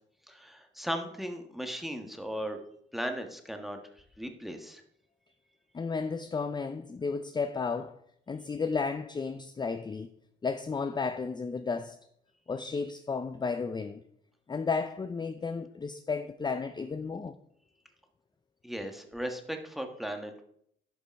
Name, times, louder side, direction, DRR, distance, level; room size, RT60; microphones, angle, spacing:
voice 1, 0.3-2.6 2.9-3.8 4.2-4.8 18.6-20.4, equal, ahead, 1.4 m, -37 dB
voice 2, 5.7-8.0 8.3-10.1 10.4-12.0 12.5-14.0 14.5-17.3, left 4 dB, 20° left, 0.5 m, -33 dB
11.5 x 5.2 x 4.6 m
cardioid pair, 90°, 20 cm